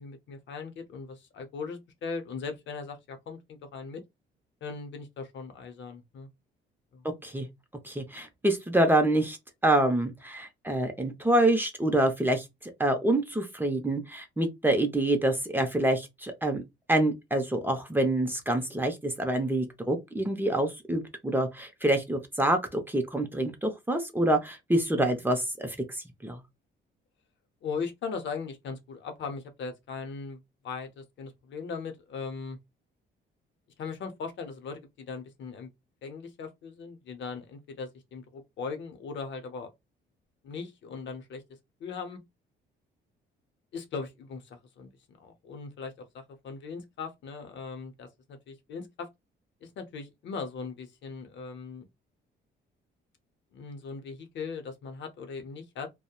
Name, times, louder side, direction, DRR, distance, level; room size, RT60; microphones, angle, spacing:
voice 1, 0.0-4.0 4.6-6.3 6.9-7.1 27.6-32.6 33.8-35.7 36.0-39.7 40.4-41.4 41.8-42.2 43.7-44.9 45.2-49.1 49.6-51.9 53.5-55.9, left 5 dB, 65° left, 0.6 m, -39 dB
voice 2, 7.8-9.4 9.6-12.5 12.8-16.6 16.9-25.8 26.2-26.4, right 1 dB, 10° right, 0.6 m, -26 dB
2.7 x 2.1 x 2.2 m
cardioid pair, 90°, 20 cm